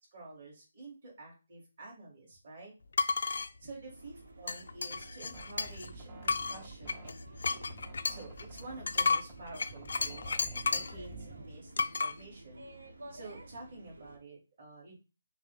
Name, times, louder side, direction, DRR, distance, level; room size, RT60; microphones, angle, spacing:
voice 1, 0.1-2.7 3.6-7.7 8.1-10.3 10.7-12.6 13.1-14.9, right 2 dB, 40° right, -3 dB, 2.3 m, -49 dB
sound 1, 2.9-3.5 4.5-5.9 6.3-11.0 11.8-12.1, left 4 dB, 60° left, 0.4 m, -32 dB
sound 2, 3.9-14.2, right 2 dB, 80° right, 1.1 m, -53 dB
sound 3, 4.9-11.6, right 3 dB, 15° right, 0.6 m, -49 dB
5.9 x 2.1 x 4.0 m, 0.29 s
hypercardioid pair, 175°, 0 cm